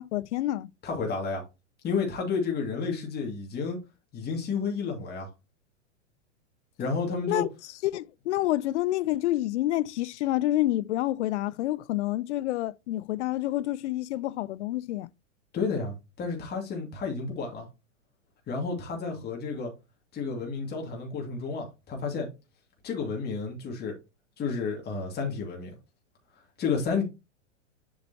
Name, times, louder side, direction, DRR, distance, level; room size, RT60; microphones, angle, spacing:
voice 1, 0.0-0.7 7.3-7.5 7.8-15.1, left 15 dB, 65° left, 0.5 m, -28 dB
voice 2, 0.8-1.4 1.8-3.8 4.1-5.3 6.8-7.5 15.5-17.7 18.5-19.7 20.1-22.3 22.8-24.0 24.4-25.8 26.6-27.0, left 5 dB, 25° left, 2.4 m, -31 dB
7.1 x 6.0 x 2.8 m
hypercardioid pair, 110°, 37 cm